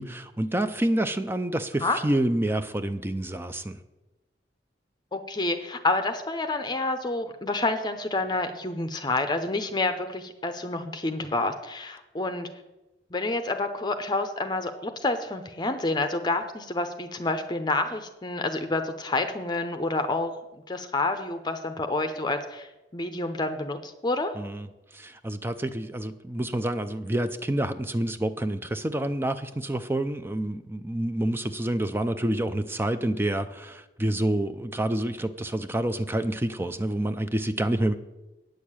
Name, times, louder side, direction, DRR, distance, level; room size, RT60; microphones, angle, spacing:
voice 1, 0.0-3.8 24.4-24.7 24.9-37.9, right 1 dB, 15° right, 10 dB, 0.4 m, -28 dB
voice 2, 5.1-12.5 13.1-20.3 20.7-24.3, left 2 dB, 25° left, 8 dB, 0.7 m, -28 dB
9.2 x 6.5 x 8.8 m, 1.0 s
head